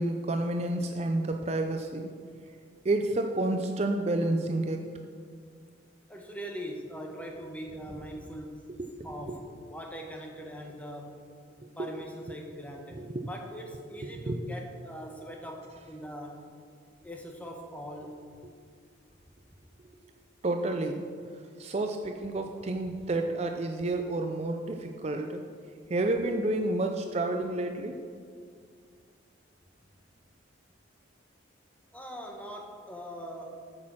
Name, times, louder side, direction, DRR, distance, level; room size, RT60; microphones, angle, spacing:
voice 1, 0.0-2.1 2.8-4.8 8.8-8.9 9.3-9.4 11.8-11.9 13.0-13.3 14.1-14.4 20.4-21.1 21.6-25.4 25.9-28.0, right 2 dB, 35° right, 4 dB, 0.4 m, -30 dB
voice 2, 6.1-8.6 9.0-11.2 11.8-16.5 17.0-18.3 31.9-33.6, equal, 5° left, 1 dB, 1.0 m, -41 dB
8.6 x 6.3 x 5.9 m, 2.2 s
head